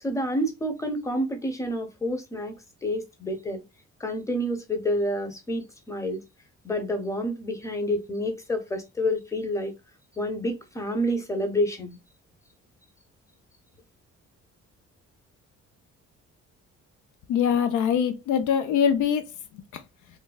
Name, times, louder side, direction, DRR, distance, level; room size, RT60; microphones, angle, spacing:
voice 1, 0.0-2.5 2.8-3.6 4.0-6.2 6.6-9.7 10.2-12.0, equal, 10° left, 0.7 m, -28 dB
voice 2, 17.3-19.2 19.5-19.8, left 8 dB, 80° left, 0.5 m, -23 dB
3.2 x 2.2 x 2.3 m
cardioid pair, 90°, 30 cm